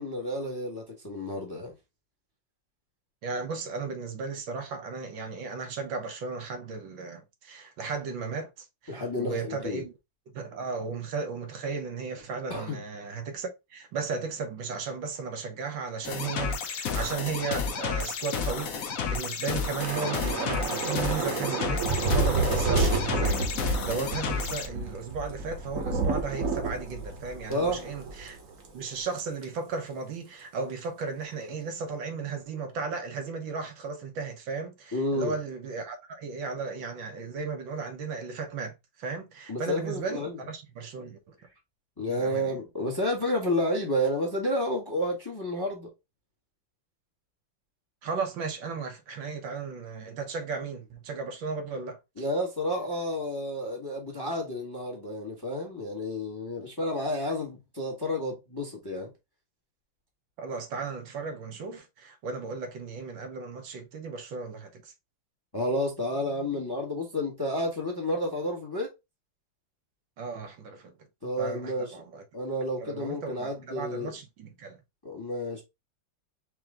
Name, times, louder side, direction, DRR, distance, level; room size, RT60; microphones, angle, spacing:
voice 1, 0.0-1.7 8.9-9.8 12.5-12.8 27.5-27.9 34.9-35.4 39.5-40.4 42.0-45.9 52.2-59.1 65.5-68.9 71.2-72.0 72.3-74.1 75.0-75.6, left 1 dB, 15° left, 1.0 m, -30 dB
voice 2, 3.2-9.9 10.3-28.4 28.7-41.3 42.1-42.5 48.0-52.3 60.4-64.9 70.2-70.9 71.4-72.2 72.8-74.8, right 5 dB, 75° right, 1.7 m, -35 dB
sound 1, 16.0-24.7, left 5 dB, 60° left, 0.9 m, -31 dB
Thunder / Rain, 19.8-28.4 28.6-28.8 29.2-29.4, right 3 dB, 50° right, 1.3 m, -30 dB
4.6 x 3.0 x 3.6 m
omnidirectional pair, 2.2 m